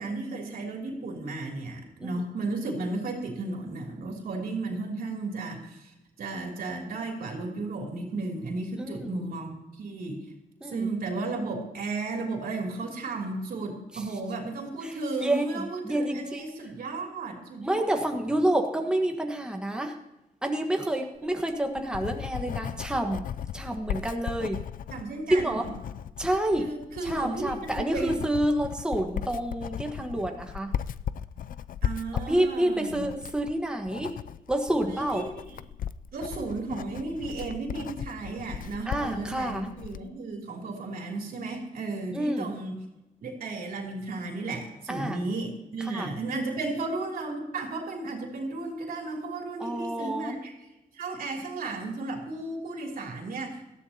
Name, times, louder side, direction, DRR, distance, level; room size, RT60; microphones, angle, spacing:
voice 1, 0.0-10.2 10.6-18.0 18.3-18.4 21.2-21.9 24.9-25.7 26.6-28.2 31.8-33.0 34.9-35.6 36.1-42.8 43.2-50.5 50.9-53.7, right 3 dB, 80° right, 1 dB, 3.1 m, -34 dB
voice 2, 8.8-9.2 10.6-10.9 13.9-14.1 14.8-16.5 17.6-20.0 20.4-23.2 23.5-24.6 25.3-25.7 26.2-26.7 27.0-30.7 32.3-34.1 34.5-35.2 38.9-39.7 42.1-42.5 44.9-45.3 45.8-46.1 49.6-50.4, right 1 dB, 5° right, 3 dB, 1.4 m, -28 dB
Writing, 21.3-40.1, left 9 dB, 70° left, 0.4 m, -37 dB
18.5 x 13.5 x 2.9 m, 0.96 s
cardioid pair, 105°, 15 cm